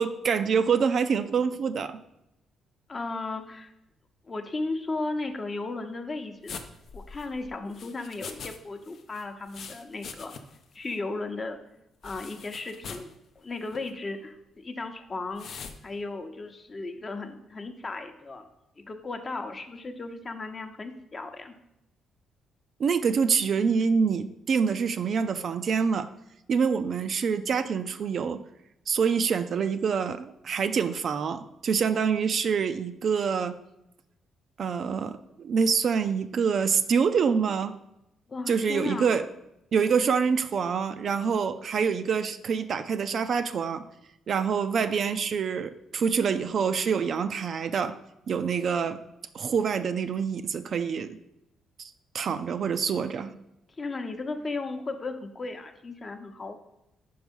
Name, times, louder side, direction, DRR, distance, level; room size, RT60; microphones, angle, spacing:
voice 1, 0.0-2.0 22.8-26.1 26.5-28.4 28.9-33.6 34.6-37.8 38.5-39.2 39.7-43.8 44.3-48.0 48.3-49.0 49.3-51.2 51.8-51.9 52.1-53.3, right 6 dB, 55° right, 10 dB, 0.4 m, -26 dB
voice 2, 2.9-3.7 4.2-6.6 6.9-10.3 10.7-11.6 12.0-15.5 15.8-18.4 18.8-21.5 38.3-39.2 53.8-56.6, left 3 dB, 35° left, 6 dB, 0.8 m, -35 dB
sound 1, 6.5-8.6 8.8-10.6 10.9-11.0 12.0-13.1 13.7-13.9 15.4-15.8, left 5 dB, 65° left, 0.6 m, -42 dB
5.3 x 4.7 x 5.3 m, 0.86 s
cardioid pair, 90°, 0 cm